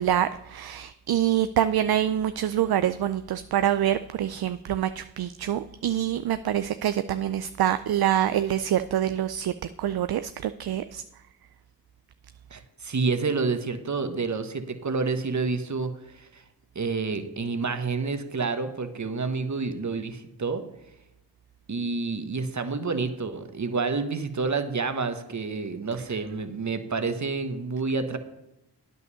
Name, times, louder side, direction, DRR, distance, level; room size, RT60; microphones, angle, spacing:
voice 1, 0.0-9.5 9.8-11.0, right 11 dB, 60° right, 12 dB, 0.5 m, -26 dB
voice 2, 12.5-16.4 16.7-20.6 21.7-28.2, right 4 dB, 40° right, 9 dB, 1.2 m, -29 dB
9.3 x 5.6 x 6.9 m, 0.92 s
cardioid pair, 45°, 43 cm